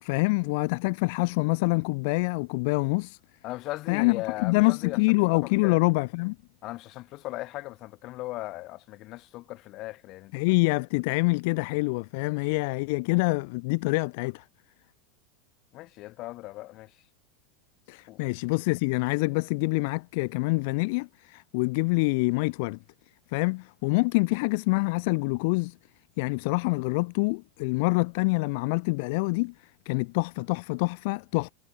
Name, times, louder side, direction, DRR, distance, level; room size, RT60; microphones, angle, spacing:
voice 1, 0.0-3.2 3.9-6.4 10.3-14.4 17.9-22.8 23.3-25.8 26.2-31.5, left 28 dB, 60° left, 0.4 m, -26 dB
voice 2, 3.4-5.2 5.4-5.8 6.6-10.4 15.7-16.9 18.1-18.2, left 18 dB, 45° left, 2.1 m, -38 dB
supercardioid pair, 140°, 0 cm